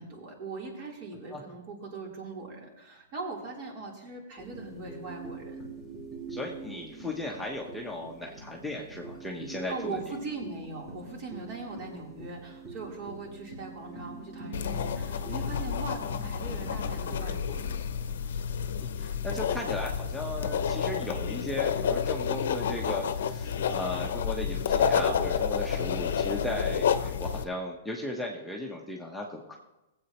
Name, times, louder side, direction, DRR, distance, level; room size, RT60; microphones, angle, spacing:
voice 1, 0.0-5.6 9.7-17.6, right 3 dB, 45° right, -2 dB, 3.6 m, -40 dB
sound 1, 4.4-17.8, right 3 dB, 20° right, 2.7 m, -45 dB
voice 2, 6.3-10.0 18.8-29.6, left 1 dB, ahead, -3 dB, 1.0 m, -36 dB
sound 2, 14.5-27.4, left 7 dB, 75° left, 0.7 m, -30 dB
17.5 x 8.0 x 3.0 m, 0.99 s
hypercardioid pair, 135°, 0 cm